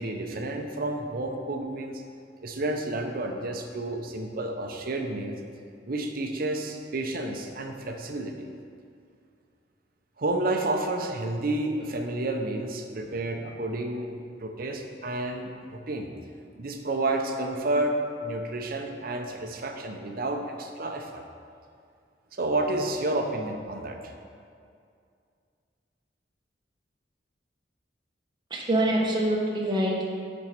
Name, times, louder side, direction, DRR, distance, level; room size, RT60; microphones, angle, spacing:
voice 1, 0.0-2.0 2.4-5.3 5.9-8.3 10.2-16.1 16.6-21.2 22.3-24.1, right 2 dB, 55° right, 4 dB, 0.7 m, -30 dB
voice 2, 28.5-30.0, right 1 dB, 25° right, -2 dB, 1.3 m, -25 dB
7.6 x 5.2 x 5.9 m, 2.4 s
head